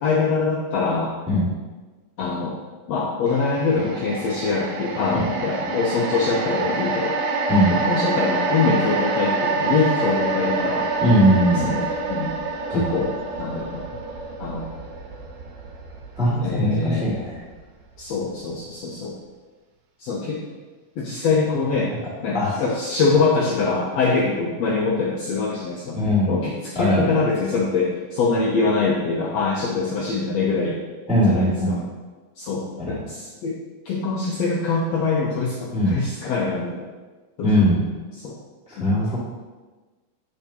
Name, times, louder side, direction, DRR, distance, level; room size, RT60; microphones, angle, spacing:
voice 1, 0.0-1.1 2.2-2.6 2.9-7.2 7.7-10.9 11.6-12.4 12.7-13.1 13.4-13.9 14.4-14.7 16.4-17.2 18.0-19.2 20.0-20.4 21.0-21.9 22.2-26.0 26.3-30.8 31.3-31.8 32.4-33.6 33.8-36.8 37.4-37.7 38.2-38.4 38.8-39.0, left 4 dB, 75° left, -3 dB, 1.6 m, -24 dB
sound 1, 3.3-17.6 18.0-18.1, right 3 dB, 90° right, 2.3 m, -27 dB
voice 2, 11.0-11.8 12.7-12.9 16.2-17.3 22.3-22.6 25.9-26.3 26.7-27.1 31.1-31.8 32.8-33.0 35.7-35.9 37.4-37.8 38.7-39.2, equal, 5° right, -9 dB, 1.1 m, -20 dB
6.8 x 6.0 x 2.8 m, 1.3 s
omnidirectional pair, 3.7 m